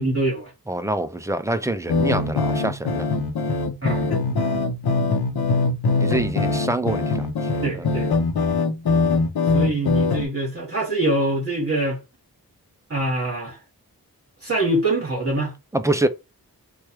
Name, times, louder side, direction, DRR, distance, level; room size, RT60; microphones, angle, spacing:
voice 1, 0.0-0.5 3.8-4.1 7.6-8.1 9.5-12.0 12.9-13.6 14.4-15.5, right 2 dB, 35° right, 1.3 m, -24 dB
voice 2, 0.7-3.1 4.2-4.4 6.0-7.3 7.7-7.9 15.7-16.1, right 1 dB, 10° right, 0.4 m, -25 dB
sound 1, 1.9-10.3, left 3 dB, 75° left, 0.7 m, -22 dB
3.2 x 2.3 x 4.3 m
wide cardioid pair, 100°, 38 cm